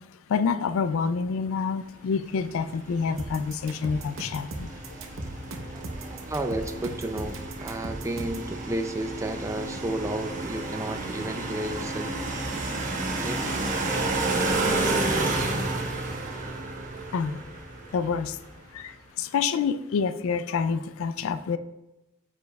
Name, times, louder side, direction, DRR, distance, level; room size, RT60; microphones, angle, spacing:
voice 1, 0.3-4.7 17.1-17.4 17.9-18.4 18.7-21.6, left 5 dB, 60° left, 13 dB, 0.3 m, -27 dB
sound 1, 2.4-18.6, right 2 dB, 35° right, 1.0 m, -31 dB
sound 2, 3.2-8.5, right 2 dB, 60° right, 0.8 m, -37 dB
voice 2, 5.7-12.1 13.2-13.4, right 1 dB, 15° right, 6 dB, 0.4 m, -32 dB
9.2 x 7.0 x 2.3 m, 0.98 s
head